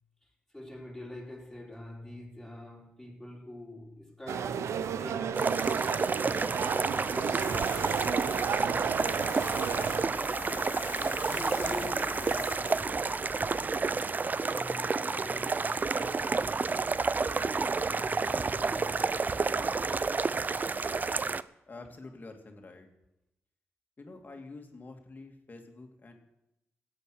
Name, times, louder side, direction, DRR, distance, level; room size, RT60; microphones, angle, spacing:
voice 1, 0.2-5.5 5.8-10.4 11.2-13.8 14.3-16.8 17.7-19.4, left 1 dB, 5° left, 4.4 m, -46 dB
sound 1, 4.3-10.1, right 8 dB, 80° right, 0.6 m, -33 dB
sound 2, 5.3-21.4, right 4 dB, 40° right, 0.5 m, -30 dB
Tools, 7.4-13.9, left 5 dB, 90° left, 2.4 m, -45 dB
voice 2, 21.7-22.9 24.0-26.1, left 3 dB, 40° left, 2.5 m, -47 dB
16.0 x 8.9 x 6.4 m
cardioid pair, 65°, 5 cm